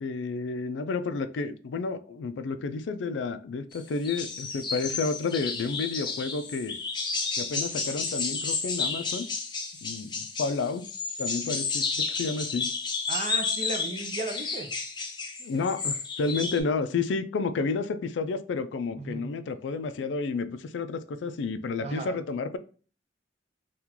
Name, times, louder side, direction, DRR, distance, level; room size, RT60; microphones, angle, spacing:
voice 1, 0.0-6.8 7.4-9.3 9.8-10.9 11.2-12.7 15.4-22.6, left 4 dB, 90° left, 0.4 m, -31 dB
sound 1, 3.7-3.8 4.0-16.6, left 4 dB, 25° left, 0.6 m, -32 dB
voice 2, 13.1-14.7 19.0-19.3 21.8-22.2, right 2 dB, 35° right, 0.5 m, -35 dB
3.7 x 2.3 x 2.9 m
head